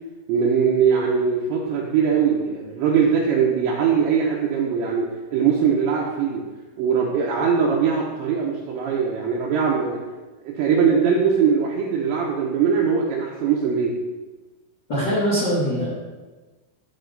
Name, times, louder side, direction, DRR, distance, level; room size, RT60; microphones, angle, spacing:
voice 1, 0.3-6.4 6.8-10.0 10.4-13.9, right 6 dB, 75° right, -3 dB, 2.8 m, -21 dB
voice 2, 14.9-15.9, equal, 40° left, -8 dB, 1.7 m, -22 dB
13.5 x 5.4 x 3.9 m, 1.3 s
omnidirectional pair, 5.8 m